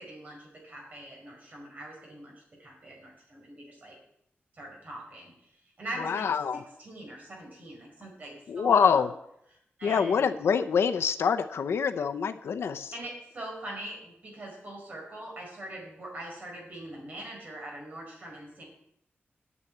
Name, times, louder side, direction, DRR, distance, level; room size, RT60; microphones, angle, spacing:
voice 1, 0.0-2.3 2.6-4.0 4.5-5.5 5.8-6.3 6.8-9.0 9.8-10.3 12.9-18.6, right 1 dB, 40° right, -1 dB, 4.7 m, -42 dB
voice 2, 6.0-6.6 8.5-9.1 9.8-12.9, left 6 dB, 90° left, 8 dB, 0.6 m, -25 dB
9.7 x 7.3 x 8.5 m, 0.76 s
wide cardioid pair, 170°, 4 cm